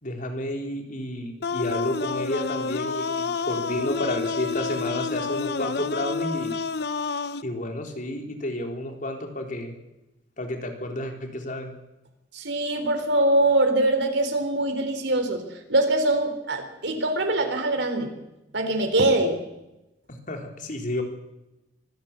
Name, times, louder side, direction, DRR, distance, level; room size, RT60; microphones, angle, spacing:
voice 1, 0.0-6.5 7.4-9.8 10.4-11.7 20.1-21.0, left 1 dB, 50° left, 3 dB, 3.8 m, -31 dB
sound 1, 1.4-7.4, left 4 dB, 65° left, 0.8 m, -29 dB
voice 2, 12.3-15.4 15.7-18.1 18.5-19.4, right 1 dB, 90° right, 5 dB, 4.1 m, -23 dB
25.0 x 15.0 x 8.4 m, 0.95 s
head